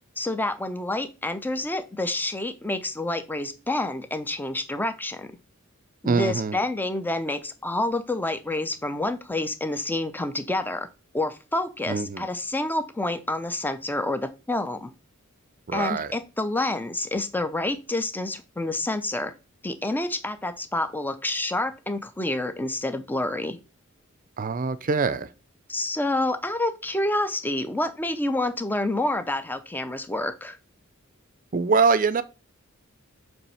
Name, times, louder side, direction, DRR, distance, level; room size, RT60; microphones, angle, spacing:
voice 1, 0.2-5.3 6.0-10.9 11.1-14.9 15.7-19.3 19.6-23.6 25.7-30.6, left 2 dB, 10° left, 0.6 m, -28 dB
voice 2, 6.0-6.6 11.9-12.2 15.7-16.1 24.4-25.3 31.5-32.2, right 4 dB, 40° right, 0.5 m, -23 dB
7.2 x 3.3 x 5.5 m
head